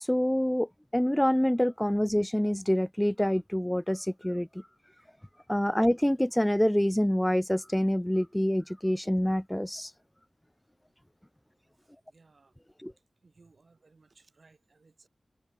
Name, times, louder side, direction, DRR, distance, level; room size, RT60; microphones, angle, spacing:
voice 1, 0.0-4.5 5.5-9.9 12.8-12.9, equal, 5° left, 0.5 m, -26 dB
voice 2, 11.8-12.6 13.2-15.1, right 3 dB, 60° right, 5.9 m, -62 dB
wide cardioid pair, 65°, 0 cm